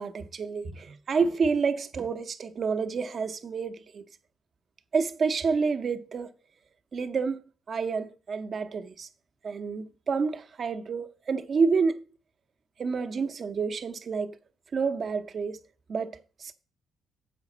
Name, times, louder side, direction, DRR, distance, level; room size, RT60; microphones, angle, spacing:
voice 1, 0.0-4.0 4.9-6.3 6.9-7.4 7.7-9.1 9.4-12.0 12.8-14.4 14.7-15.6 15.9-16.5, right 5 dB, 45° right, 0.9 m, -29 dB
7.7 x 4.9 x 7.2 m
cardioid pair, 90°, 0 cm